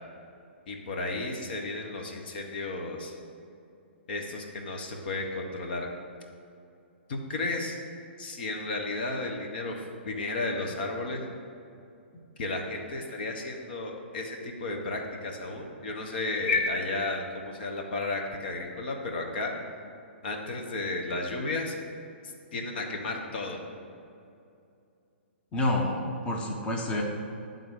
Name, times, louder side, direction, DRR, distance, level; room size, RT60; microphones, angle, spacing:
voice 1, 0.7-3.1 4.1-5.9 7.1-7.8 8.2-11.3 12.4-19.5 20.2-21.8 22.5-23.6, left 2 dB, 50° left, 2 dB, 1.1 m, -33 dB
voice 2, 25.5-27.0, left 1 dB, 15° left, -1 dB, 1.0 m, -28 dB
10.5 x 3.9 x 6.5 m, 2.6 s
figure-of-eight pair, 115°, 6 cm